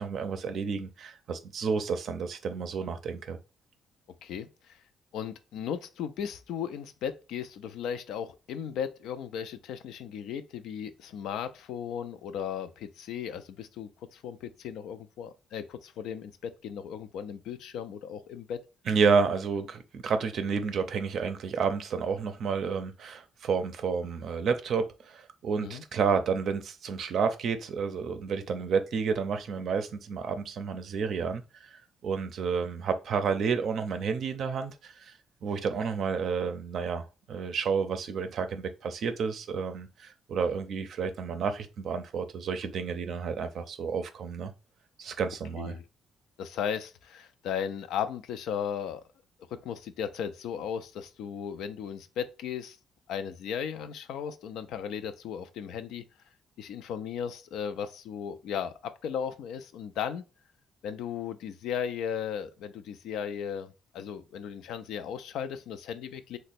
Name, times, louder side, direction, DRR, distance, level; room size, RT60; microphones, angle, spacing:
voice 1, 0.0-3.4 18.9-31.4 31.7-35.1 35.4-44.5 45.0-45.8, right 5 dB, 65° right, 0.5 m, -30 dB
voice 2, 4.2-4.8 5.1-18.6 25.6-25.8 45.6-45.8 46.4-49.0 49.5-52.8 53.1-56.0 56.6-60.2 60.8-66.4, left 8 dB, 85° left, 0.4 m, -36 dB
2.9 x 2.1 x 4.1 m
cardioid pair, 90°, 0 cm